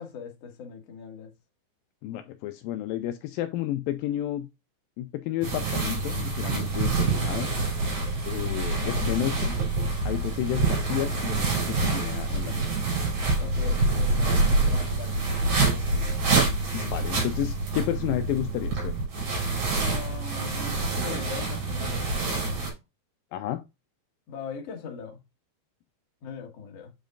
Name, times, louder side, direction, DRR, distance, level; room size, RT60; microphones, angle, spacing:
voice 1, 0.0-1.3 13.4-16.2 19.8-22.8 24.3-25.2 26.2-26.9, left 5 dB, 55° left, 2.0 m, -40 dB
voice 2, 2.0-4.5 5.0-7.5 8.3-9.5 10.1-12.8 16.7-19.0 23.3-23.6, left 13 dB, 85° left, 2.0 m, -31 dB
sound 1, 5.4-22.7, right 3 dB, 65° right, 5.1 m, -26 dB
8.2 x 5.1 x 2.5 m
omnidirectional pair, 4.6 m